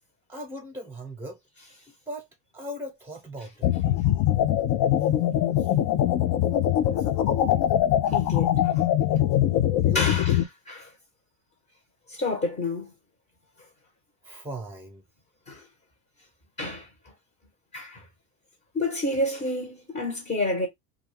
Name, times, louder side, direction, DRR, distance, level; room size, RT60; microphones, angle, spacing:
voice 1, 0.3-1.4 2.1-2.3 2.5-3.9 9.7-10.2 14.2-15.0, equal, 5° right, 1.0 m, -38 dB
sound 1, 3.6-10.4, left 12 dB, 45° left, 0.5 m, -22 dB
voice 2, 8.1-8.8 9.9-10.3 10.7-10.9 12.1-12.9 15.5-15.6 16.6-16.9 17.7-18.0 18.7-20.7, left 2 dB, 20° left, 1.1 m, -29 dB
2.5 x 2.2 x 3.2 m
hypercardioid pair, 80°, 49 cm